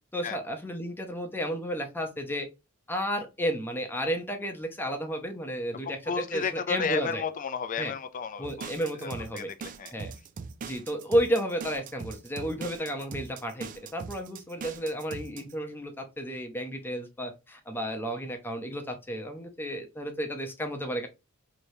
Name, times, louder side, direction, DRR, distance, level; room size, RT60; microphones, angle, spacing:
voice 1, 0.1-2.5 2.9-7.2 7.8-7.9 8.4-9.5 9.9-10.1 10.6-21.1, equal, 10° left, 0.7 m, -32 dB
voice 2, 5.8-8.7 9.0-9.9, left 6 dB, 40° left, 0.4 m, -33 dB
sound 1, 8.4-15.5, right 5 dB, 40° right, 0.3 m, -41 dB
3.2 x 2.9 x 2.6 m
head